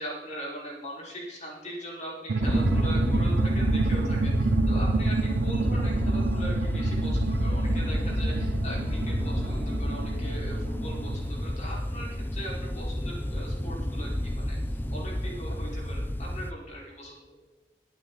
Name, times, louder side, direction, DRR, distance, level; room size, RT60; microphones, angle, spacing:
voice 1, 0.0-17.2, right 1 dB, 40° left, -4 dB, 4.8 m, -40 dB
sound 1, 2.3-11.5, right 4 dB, 65° right, 0.5 m, -29 dB
sound 2, 2.4-16.5, left 1 dB, 10° left, 0.6 m, -29 dB
22.5 x 9.5 x 4.0 m, 1.2 s
head